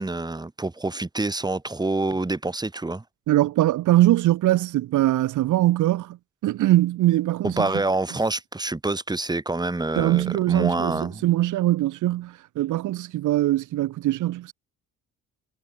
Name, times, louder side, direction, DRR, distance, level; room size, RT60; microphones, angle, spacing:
voice 1, 0.0-3.0 7.4-11.2, right 2 dB, 15° right, 2.4 m, -27 dB
voice 2, 3.3-6.2 6.4-7.7 10.0-14.5, right 15 dB, 80° right, 1.2 m, -22 dB
cardioid pair, 90°, 30 cm